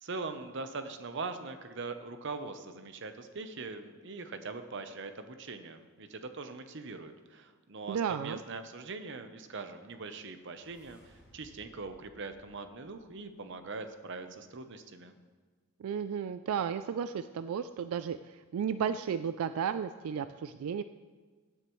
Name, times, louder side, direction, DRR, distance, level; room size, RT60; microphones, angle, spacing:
voice 1, 0.0-15.1, right 3 dB, 55° right, 9 dB, 0.8 m, -42 dB
voice 2, 7.9-8.4 15.8-20.8, right 7 dB, 85° right, 11 dB, 0.3 m, -33 dB
sound 1, 9.8-13.8, equal, 5° right, 3.3 m, -64 dB
16.0 x 10.0 x 3.1 m, 1.5 s
head